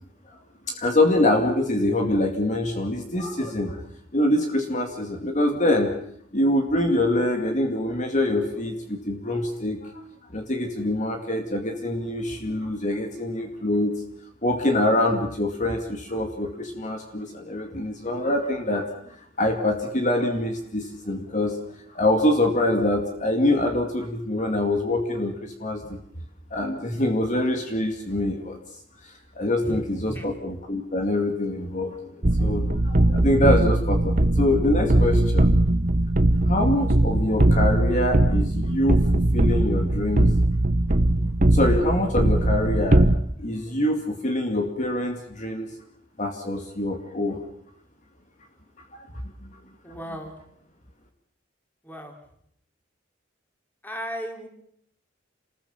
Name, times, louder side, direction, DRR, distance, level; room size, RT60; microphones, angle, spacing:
voice 1, 0.7-3.8 4.1-5.9 6.3-10.0 10.3-14.0 14.4-21.6 21.9-26.0 26.5-28.6 29.0-32.0 32.4-35.6 36.4-40.3 41.2-43.1 43.4-45.7 46.2-47.4 48.9-49.1 49.4-49.6, left 1 dB, 40° left, 4 dB, 2.4 m, -25 dB
sound 1, 32.2-43.2, right 1 dB, 45° right, 1.1 m, -20 dB
voice 2, 49.8-50.4 51.8-52.2 53.8-54.5, equal, 10° left, 4 dB, 3.9 m, -34 dB
28.5 x 20.5 x 7.2 m, 0.69 s
head